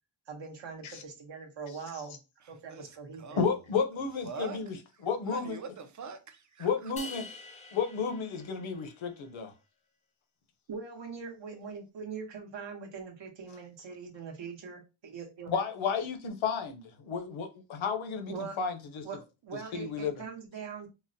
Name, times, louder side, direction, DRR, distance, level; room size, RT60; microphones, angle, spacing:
voice 1, 0.3-2.2 2.5-3.4 10.7-15.5 18.3-18.6 19.0-20.9, right 5 dB, 60° right, 0.9 m, -42 dB
voice 2, 2.7-3.5 4.2-4.6 4.9-6.9, right 5 dB, 40° right, 0.5 m, -44 dB
voice 3, 3.4-4.8 5.0-5.6 6.6-7.3 7.7-9.5 15.5-19.0 19.7-20.3, left 6 dB, 70° left, 0.8 m, -32 dB
sound 1, 7.0-9.3, left 3 dB, 15° left, 0.5 m, -46 dB
4.0 x 2.0 x 2.6 m
wide cardioid pair, 160°, 49 cm